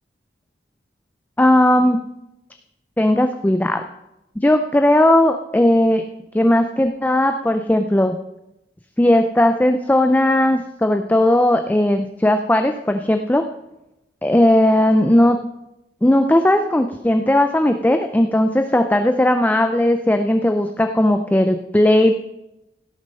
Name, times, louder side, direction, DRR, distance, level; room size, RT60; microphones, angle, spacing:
voice 1, 1.4-2.0 3.0-3.8 4.4-6.0 6.3-8.1 9.0-13.4 14.2-15.4 16.0-22.1, left 1 dB, 10° left, 6 dB, 0.4 m, -17 dB
17.0 x 6.5 x 5.4 m, 0.90 s
head